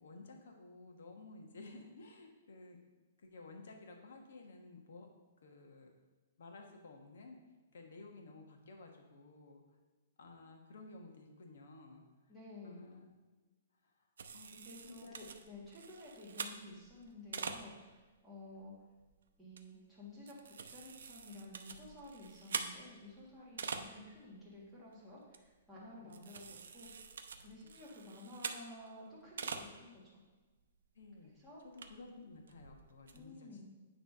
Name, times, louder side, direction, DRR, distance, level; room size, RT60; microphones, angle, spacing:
voice 1, 0.0-2.8 3.2-5.1 5.4-5.9 6.4-7.4 7.7-9.6 10.2-12.0 12.6-13.1 13.8-13.9 14.3-14.5 14.8-15.3 23.4-23.6 25.9-26.2 27.4-27.7 30.9-31.3 31.6-33.7, left 3 dB, 70° left, 3 dB, 1.2 m, -54 dB
voice 2, 12.3-12.8 14.5-18.7 19.4-26.9 27.4-30.2 31.2-31.6 33.1-33.7, left 1 dB, ahead, -8 dB, 1.7 m, -53 dB
sound 1, 14.2-18.0 18.6-18.7 19.0-19.1 19.5-19.6 20.0-24.2 24.5-24.6 24.9-25.0 25.3-25.7 26.1-28.9 29.1-29.7 30.1-30.2 30.6-30.7 31.0-31.1 31.6-33.2, right 5 dB, 80° right, 0.6 m, -45 dB
9.0 x 3.3 x 5.4 m, 1.3 s
hypercardioid pair, 175°, 0 cm